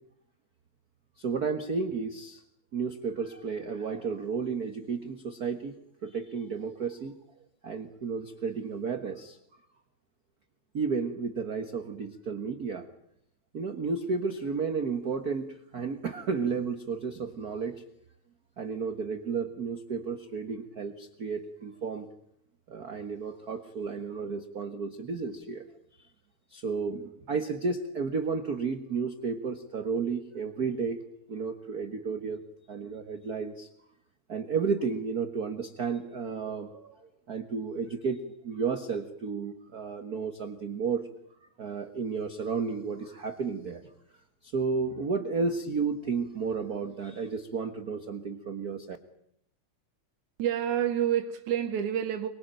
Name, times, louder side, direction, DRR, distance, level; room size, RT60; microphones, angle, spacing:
voice 1, 1.2-2.4 2.7-5.8 6.0-7.1 7.6-9.4 10.7-12.9 13.5-17.8 18.6-22.1 22.7-25.7 26.5-31.0 31.3-33.7 34.3-41.1 41.6-43.8 44.4-49.0, right 5 dB, 45° right, 1.4 m, -32 dB
voice 2, 50.4-52.3, right 10 dB, 85° right, 2.7 m, -28 dB
24.5 x 23.0 x 9.0 m
omnidirectional pair, 3.4 m